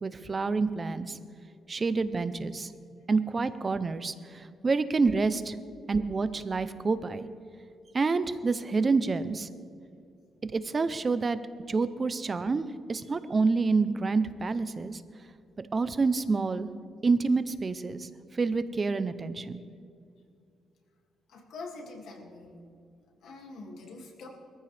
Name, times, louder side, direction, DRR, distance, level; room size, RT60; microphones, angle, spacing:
voice 1, 0.0-1.2 1.7-2.7 3.1-5.6 5.9-7.3 7.9-9.5 10.4-11.4 11.7-15.0 15.6-16.7 17.0-19.6, right 4 dB, 25° right, 13 dB, 0.6 m, -28 dB
voice 2, 21.3-22.6 23.2-24.3, left 3 dB, 75° left, 1 dB, 2.3 m, -44 dB
21.5 x 14.5 x 3.4 m, 2.4 s
cardioid pair, 155°, 0 cm